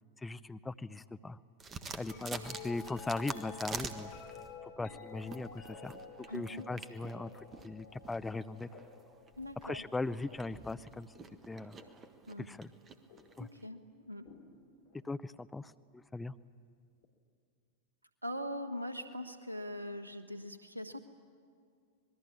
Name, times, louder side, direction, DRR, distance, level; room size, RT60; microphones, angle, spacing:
voice 1, 0.2-1.4 1.9-4.1 4.6-5.9 6.3-8.7 9.6-11.1 11.5-11.8 12.4-12.7 13.4-13.5 15.0-16.3, left 3 dB, 10° left, 12 dB, 0.6 m, -39 dB
sound 1, 1.6-4.5 5.1-13.7, right 4 dB, 25° right, 1.5 m, -47 dB
sound 2, 2.0-12.2 13.1-13.5 14.3-15.2 17.0-17.1, left 5 dB, 50° left, 3.4 m, -52 dB
voice 2, 6.3-6.7 9.4-9.8 12.3-12.5 13.4-14.3 18.2-21.0, equal, 85° right, 9 dB, 1.5 m, -41 dB
26.5 x 21.0 x 8.6 m, 2.2 s
figure-of-eight pair, 90°, 0 cm